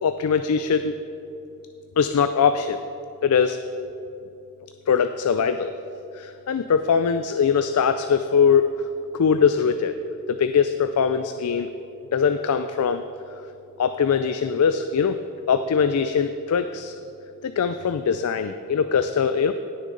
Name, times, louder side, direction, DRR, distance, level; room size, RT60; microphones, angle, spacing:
voice 1, 0.0-1.0 2.0-2.8 3.2-3.6 4.9-5.7 6.1-8.7 9.1-10.0 10.3-11.7 12.1-13.0 13.8-15.2 15.5-16.9 17.4-19.5, left 6 dB, 85° left, 10 dB, 0.4 m, -21 dB
17.0 x 6.4 x 3.9 m, 2.7 s
head